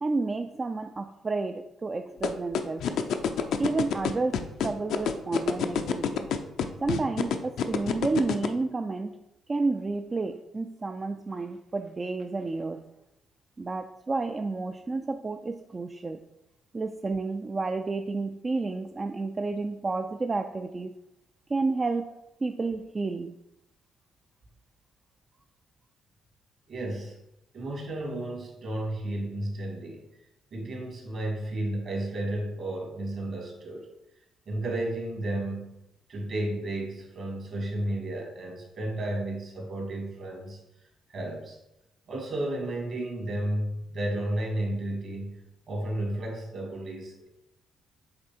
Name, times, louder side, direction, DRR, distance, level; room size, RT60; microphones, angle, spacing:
voice 1, 0.0-2.9 3.6-6.3 6.8-9.2 9.5-12.9 13.6-16.2 16.7-20.9 21.5-23.4, right 3 dB, 30° right, 6 dB, 0.4 m, -31 dB
sound 1, 2.2-8.5, left 8 dB, 75° left, 0.5 m, -26 dB
voice 2, 26.7-27.2 27.5-30.1 30.5-33.9 34.5-35.8 36.1-40.6 41.1-41.6 42.1-45.4 45.7-47.3, right 1 dB, 55° right, 0 dB, 2.2 m, -32 dB
7.6 x 3.4 x 4.4 m, 0.86 s
cardioid pair, 90°, 0 cm